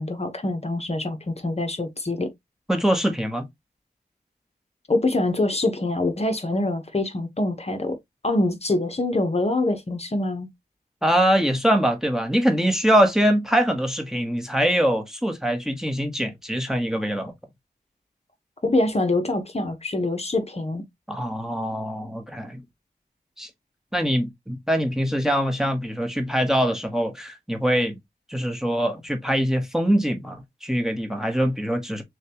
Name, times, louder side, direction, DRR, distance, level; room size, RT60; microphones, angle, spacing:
voice 1, 0.0-2.3 4.9-8.0 8.2-10.5 18.6-20.8, left 2 dB, 40° left, 0.9 m, -25 dB
voice 2, 2.7-3.5 11.0-17.3 21.1-22.6 23.4-23.5 23.9-28.0 28.3-32.0, equal, 5° right, 1.1 m, -23 dB
6.5 x 2.3 x 2.9 m
wide cardioid pair, 60°, 17 cm